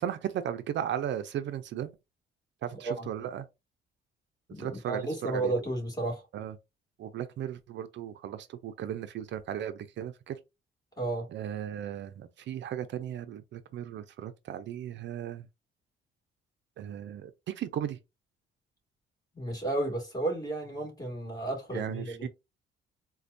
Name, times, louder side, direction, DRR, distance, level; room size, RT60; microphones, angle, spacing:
voice 1, 0.0-1.9 2.6-3.5 4.6-5.5 6.3-6.6 7.0-10.4 11.3-15.5 16.8-18.0 21.7-22.3, right 10 dB, 65° right, 0.5 m, -36 dB
voice 2, 4.5-6.2 11.0-11.3 19.3-22.3, right 2 dB, 20° left, 2.0 m, -32 dB
4.2 x 2.3 x 2.5 m
cardioid pair, 90°, 20 cm